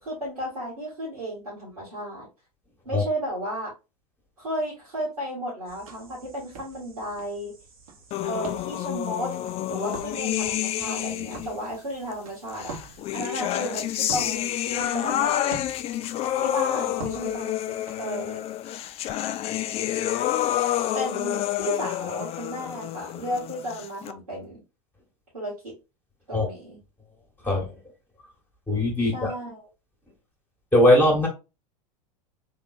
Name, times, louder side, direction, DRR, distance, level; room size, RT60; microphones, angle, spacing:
voice 1, 0.0-2.3 2.9-3.7 4.4-7.5 8.2-9.3 9.7-12.8 13.1-15.4 16.4-18.4 20.9-24.6 25.3-25.7 26.3-26.8 29.0-29.6, equal, 90° right, 2.0 m, -33 dB
sound 1, 5.6-18.0, right 4 dB, 70° right, 1.2 m, -45 dB
sound 2, 8.1-11.6 12.6-24.1, left 12 dB, 35° left, 0.4 m, -28 dB
voice 2, 27.4-27.7 28.7-29.3 30.7-31.3, left 1 dB, 10° left, 1.3 m, -20 dB
3.7 x 3.0 x 2.5 m
hypercardioid pair, 85°, 19 cm